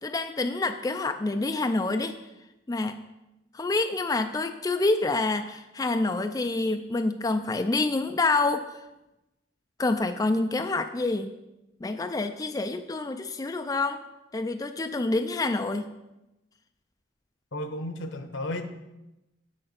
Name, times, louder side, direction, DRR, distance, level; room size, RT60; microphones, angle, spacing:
voice 1, 0.0-2.2 2.7-3.0 3.5-8.8 9.8-11.3 11.8-14.0 14.3-15.9, left 3 dB, 20° left, 7 dB, 0.3 m, -27 dB
voice 2, 17.5-18.6, left 1 dB, 85° left, 8 dB, 1.0 m, -33 dB
7.5 x 6.6 x 5.8 m, 0.96 s
head